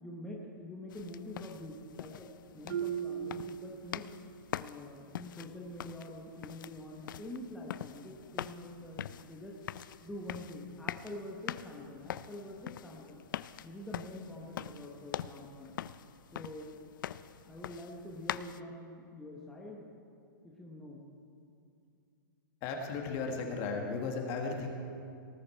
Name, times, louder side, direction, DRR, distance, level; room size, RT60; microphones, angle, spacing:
voice 1, 0.0-4.1 4.5-9.6 10.0-13.2 13.6-15.7 16.3-16.8 17.4-19.8 20.4-21.0, left 1 dB, 5° left, -3 dB, 0.9 m, -46 dB
sound 1, 0.9-18.6, left 11 dB, 65° left, 0.4 m, -44 dB
Marimba xylophone, 2.7-4.4, right 9 dB, 75° right, 0.4 m, -38 dB
voice 2, 22.6-24.7, left 4 dB, 30° left, 3 dB, 1.5 m, -35 dB
18.5 x 9.1 x 4.4 m, 2.5 s
hypercardioid pair, 160°, 11 cm